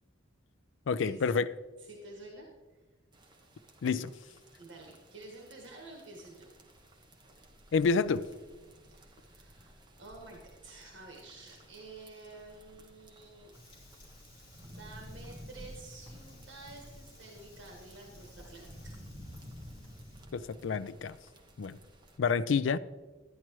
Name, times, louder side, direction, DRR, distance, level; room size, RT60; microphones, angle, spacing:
voice 1, 0.9-1.5 3.8-4.1 7.7-8.3 20.3-21.2 21.6-21.8 22.2-22.8, left 5 dB, 75° left, 0.4 m, -28 dB
voice 2, 1.8-2.8 4.6-6.5 8.8-13.5 14.6-19.0, right 2 dB, 75° right, 1.5 m, -50 dB
sound 1, 3.1-22.2, equal, 25° right, 1.0 m, -53 dB
Fire, 13.5-20.3, left 1 dB, 25° left, 2.4 m, -57 dB
12.0 x 9.9 x 3.1 m
head